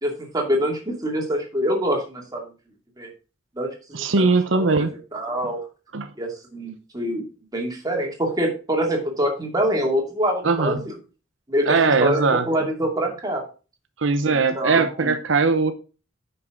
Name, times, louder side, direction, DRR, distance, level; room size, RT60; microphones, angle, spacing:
voice 1, 0.0-2.4 3.0-3.1 3.6-4.3 4.5-4.9 5.1-5.7 6.2-7.3 7.5-11.0 11.5-13.5 14.3-15.1, equal, 20° right, 0 dB, 2.5 m, -25 dB
voice 2, 3.9-4.9 5.9-6.1 10.4-10.8 11.7-12.4 14.0-15.7, right 4 dB, 80° right, 10 dB, 0.8 m, -20 dB
9.6 x 5.6 x 3.8 m, 0.33 s
head